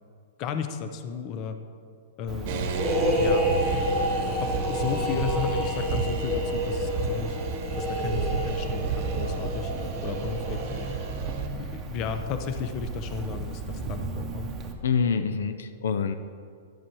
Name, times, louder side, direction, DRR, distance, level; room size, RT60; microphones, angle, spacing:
voice 1, 0.4-1.6 2.2-2.7 3.2-3.5 4.4-7.4 7.8-9.7 10.0-10.9 11.6-14.5, left 6 dB, 35° left, 8 dB, 0.7 m, -34 dB
Cricket, 2.3-14.7, right 3 dB, 20° right, 0.9 m, -37 dB
sound 1, 2.5-11.5, right 6 dB, 50° right, 1.0 m, -32 dB
sound 2, 2.7-11.3, left 1 dB, 15° left, 2.5 m, -29 dB
voice 2, 14.8-16.1, left 6 dB, 85° left, 10 dB, 0.5 m, -26 dB
11.0 x 7.4 x 4.6 m, 2.3 s
hypercardioid pair, 145°, 0 cm